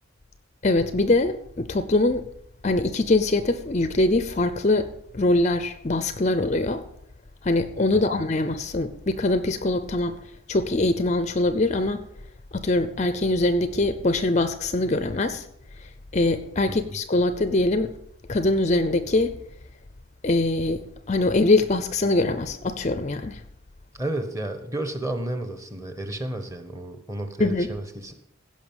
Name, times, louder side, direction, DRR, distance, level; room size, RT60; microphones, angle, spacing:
voice 1, 0.6-2.2 2.6-6.8 7.4-10.2 10.5-12.0 12.5-15.5 16.1-17.9 18.3-19.3 20.2-23.4 27.4-27.7, left 2 dB, 35° left, 11 dB, 0.6 m, -23 dB
voice 2, 23.9-28.1, right 1 dB, 15° right, 7 dB, 1.3 m, -32 dB
16.0 x 5.6 x 7.3 m, 0.75 s
head